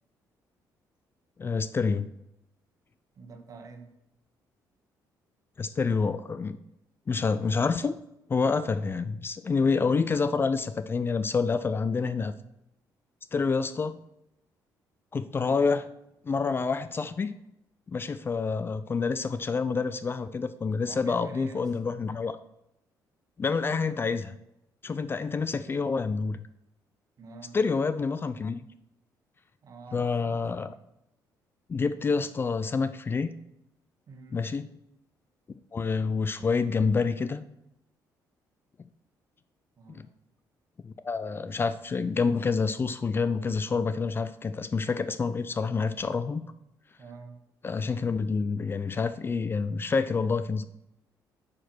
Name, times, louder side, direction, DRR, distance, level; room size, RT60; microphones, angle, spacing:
voice 1, 1.4-2.1 5.6-6.6 7.1-8.0 8.3-12.3 13.3-14.0 15.1-15.8 16.2-17.3 17.9-22.4 23.4-24.3 24.8-26.4 27.5-28.6 29.9-30.7 31.7-33.3 34.3-34.7 35.7-37.4 39.9-40.0 40.8-46.4 47.6-50.6, left 4 dB, 30° left, 13 dB, 0.4 m, -28 dB
voice 2, 3.1-3.9 15.4-15.7 20.9-21.8 27.2-27.6 29.6-30.8 34.1-34.5 39.8-40.1 47.0-47.4, right 4 dB, 50° right, 5 dB, 1.3 m, -47 dB
8.6 x 5.0 x 6.2 m, 0.85 s
cardioid pair, 105°, 8 cm